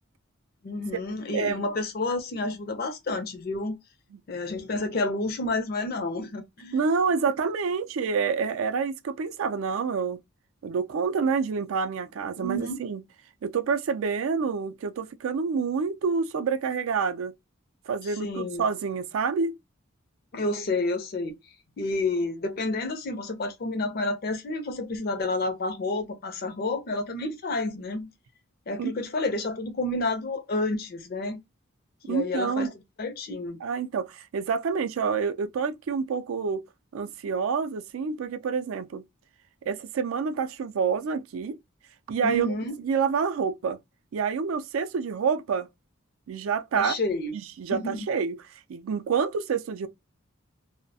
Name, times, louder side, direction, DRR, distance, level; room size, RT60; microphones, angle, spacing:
voice 1, 0.6-3.8 4.3-6.8 12.4-12.8 18.0-18.6 20.3-21.4 21.8-28.1 28.7-31.4 32.1-32.7 33.0-33.6 42.2-42.7 46.7-47.3 47.7-48.1, left 2 dB, 45° left, 0.4 m, -30 dB
voice 2, 1.3-1.6 4.1-4.2 6.7-10.2 10.6-13.0 13.4-17.3 17.9-19.6 28.8-28.9 32.1-32.7 33.6-36.6 36.9-39.0 39.7-41.6 42.1-42.5 42.8-43.8 44.1-45.7 46.3-46.9 47.3-48.4 48.7-49.9, right 5 dB, 80° right, 0.4 m, -27 dB
2.3 x 2.1 x 2.6 m
head